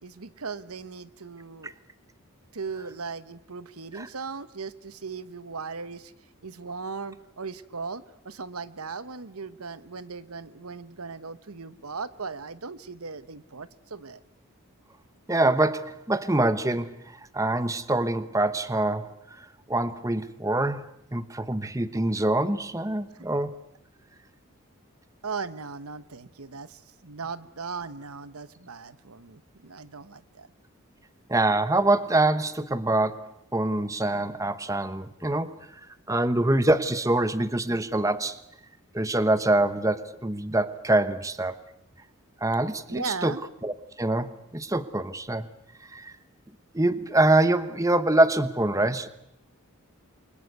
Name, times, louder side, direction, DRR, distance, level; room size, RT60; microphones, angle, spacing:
voice 1, 0.0-1.7 2.5-6.1 6.4-14.2 23.1-23.3 25.2-30.5 42.9-43.4, right 4 dB, 85° right, 15 dB, 1.2 m, -38 dB
voice 2, 15.3-17.0 17.3-19.1 19.7-20.8 21.1-23.5 31.3-35.6 36.1-38.4 38.9-41.6 42.4-43.3 43.6-45.5 45.9-46.1 46.7-49.1, right 2 dB, 15° right, 13 dB, 1.0 m, -25 dB
29.0 x 23.5 x 8.1 m, 0.77 s
head